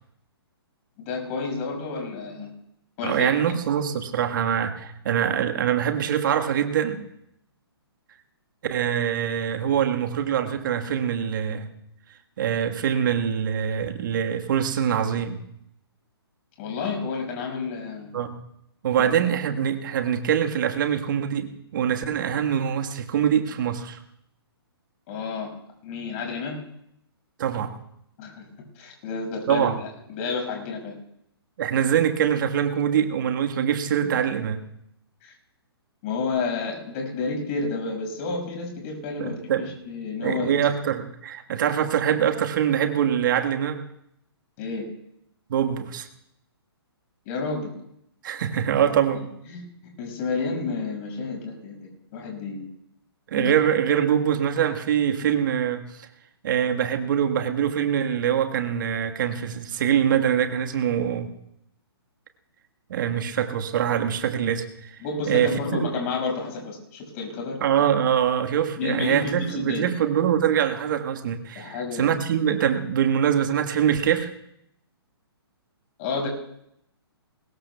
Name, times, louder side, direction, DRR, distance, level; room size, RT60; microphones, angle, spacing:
voice 1, 1.1-2.5 3.0-3.3 16.6-18.1 19.0-19.1 25.1-25.5 25.8-26.6 28.2-28.4 28.8-29.7 30.1-30.9 34.0-34.1 35.2-35.3 36.0-40.5 44.6-44.9 47.3-47.7 49.5-52.7 53.4-53.5 65.0-67.6 68.8-69.9 71.6-72.1 76.0-76.3, left 4 dB, 35° left, 1 dB, 5.8 m, -30 dB
voice 2, 3.0-7.0 8.7-11.7 12.4-15.4 18.1-18.4 18.8-24.0 27.4-27.7 29.5-29.8 31.6-34.6 39.2-39.7 40.2-43.8 45.5-46.1 48.2-49.2 53.3-56.1 56.4-61.3 62.9-65.0 65.2-65.9 67.6-74.3, right 9 dB, 50° right, 6 dB, 1.5 m, -24 dB
23.0 x 20.0 x 2.3 m, 0.76 s
figure-of-eight pair, 135°, 14 cm